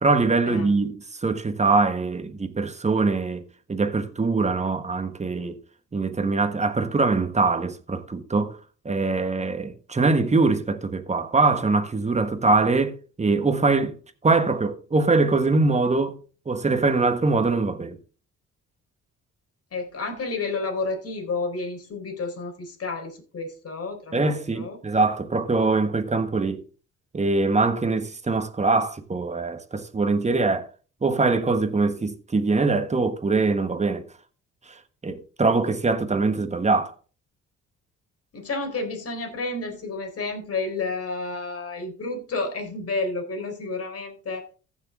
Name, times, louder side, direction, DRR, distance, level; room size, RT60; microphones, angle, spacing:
voice 1, 0.0-3.4 3.7-5.6 5.9-8.6 8.8-14.0 14.2-16.2 16.5-18.0 24.1-26.6 27.1-30.7 31.0-34.0 35.0-36.9, right 3 dB, 20° right, 1.4 m, -23 dB
voice 2, 19.7-24.8 38.3-44.4, left 3 dB, 50° left, 4.2 m, -31 dB
14.5 x 6.5 x 3.7 m
cardioid pair, 90°, 30 cm